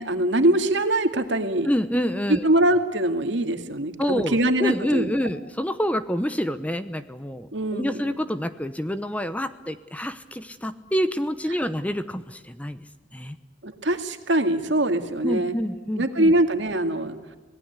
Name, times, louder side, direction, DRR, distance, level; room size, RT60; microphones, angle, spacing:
voice 1, 0.0-1.7 2.3-5.1 7.5-8.0 13.6-15.5 16.0-17.2, right 1 dB, 70° right, 6 dB, 2.3 m, -23 dB
voice 2, 1.6-2.5 4.0-12.9 13.1-13.4 15.2-16.3, equal, 5° left, 11 dB, 0.9 m, -27 dB
26.0 x 18.5 x 8.2 m, 1.3 s
head